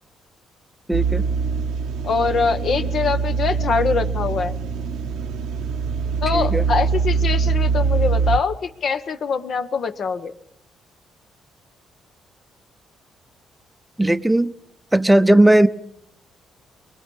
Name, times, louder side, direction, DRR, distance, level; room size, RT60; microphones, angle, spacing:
voice 1, 0.9-1.2 6.3-6.6 14.0-14.5 14.9-15.7, right 1 dB, 5° right, 0.7 m, -16 dB
sound 1, 0.9-8.4, right 5 dB, 85° right, 0.9 m, -23 dB
voice 2, 2.0-4.5 6.2-10.3, left 5 dB, 55° left, 1.2 m, -23 dB
23.5 x 21.5 x 5.5 m
cardioid pair, 90°, 0 cm